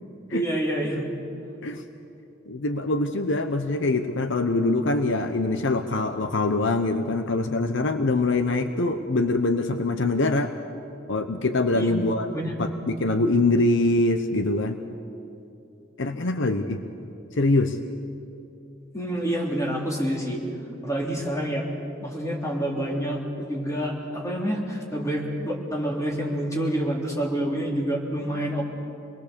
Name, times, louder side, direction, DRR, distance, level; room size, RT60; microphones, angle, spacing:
voice 1, 0.3-1.1 11.7-11.9 12.3-12.6 18.9-20.4 20.8-21.6 22.0-28.6, right 1 dB, 15° left, -2 dB, 3.3 m, -27 dB
voice 2, 2.5-10.5 11.1-12.3 12.6-14.8 16.0-16.8 17.4-17.8, left 2 dB, 65° left, 8 dB, 0.9 m, -24 dB
26.5 x 20.5 x 6.9 m, 2.8 s
head